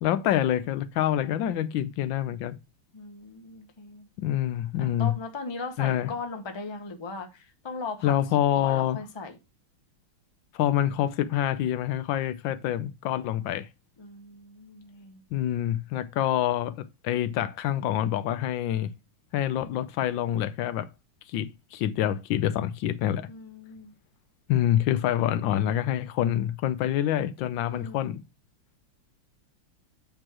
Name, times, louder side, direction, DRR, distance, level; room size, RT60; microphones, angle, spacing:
voice 1, 0.0-2.6 4.2-5.1 5.8-6.1 8.0-9.0 10.5-13.7 15.3-18.9 19.3-20.9 21.3-23.3 24.5-28.2, left 11 dB, 80° left, 1.3 m, -26 dB
voice 2, 2.9-4.1 4.8-8.2 8.5-9.4 14.0-15.2 23.3-23.9 27.6-28.1, left 4 dB, 20° left, 0.7 m, -38 dB
8.8 x 3.2 x 6.0 m
omnidirectional pair, 2.1 m